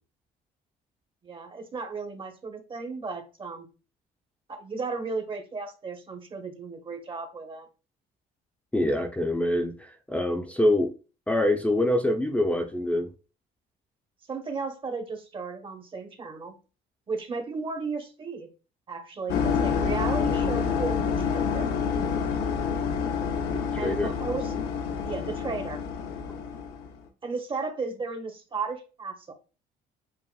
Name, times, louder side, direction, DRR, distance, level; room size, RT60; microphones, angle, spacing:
voice 1, 1.2-3.7 4.5-7.7 14.3-16.5 17.1-18.5 18.9-21.7 23.8-24.5 25.0-25.8 27.2-29.3, right 4 dB, 30° right, 6 dB, 1.1 m, -34 dB
voice 2, 8.7-10.9 11.3-13.1 23.5-24.1, left 1 dB, 10° left, 2 dB, 0.7 m, -25 dB
sound 1, 19.3-26.9, left 6 dB, 85° left, 0.8 m, -28 dB
7.5 x 2.5 x 2.3 m, 0.33 s
cardioid pair, 110°, 17 cm